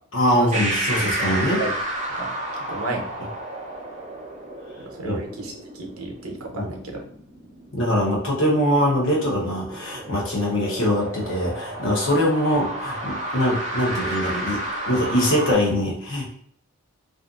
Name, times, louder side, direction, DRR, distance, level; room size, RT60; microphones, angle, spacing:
voice 1, 0.1-1.6 5.0-5.2 6.5-6.7 7.7-16.3, equal, 60° left, -3 dB, 0.8 m, -23 dB
sound 1, 0.5-15.5, right 1 dB, 35° right, 0.6 m, -32 dB
voice 2, 1.0-1.7 2.1-2.3 2.7-3.0 4.8-7.0, right 2 dB, 80° right, 2 dB, 0.7 m, -32 dB
2.5 x 2.4 x 2.4 m, 0.63 s
head